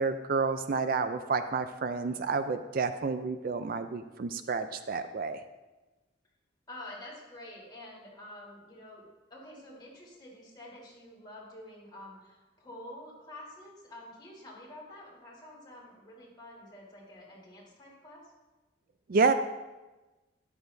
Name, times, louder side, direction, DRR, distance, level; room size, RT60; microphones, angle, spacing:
voice 1, 0.0-5.4 19.1-19.3, right 4 dB, 50° right, 10 dB, 0.4 m, -29 dB
voice 2, 6.7-9.0 9.3-18.2, left 1 dB, 25° left, -5 dB, 3.5 m, -48 dB
12.5 x 11.0 x 2.7 m, 1.1 s
head